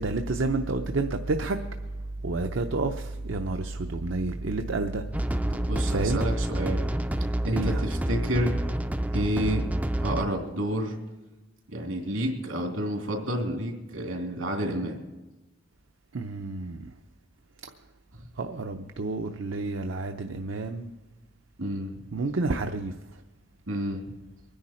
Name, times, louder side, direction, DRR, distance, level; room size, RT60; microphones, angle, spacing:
voice 1, 0.0-1.9 2.2-5.0 5.9-6.2 7.5-7.8 16.1-16.9 18.4-20.9 22.1-22.9, right 3 dB, 70° right, 5 dB, 0.7 m, -30 dB
sound 1, 5.1-10.3, right 1 dB, 5° right, 0.4 m, -28 dB
voice 2, 5.5-6.8 7.4-8.6 9.1-9.6 10.0-11.0 11.7-15.0 18.1-18.2 21.6-22.0 23.7-24.0, right 1 dB, 90° right, 1 dB, 2.8 m, -29 dB
23.5 x 10.5 x 4.3 m, 1.1 s
head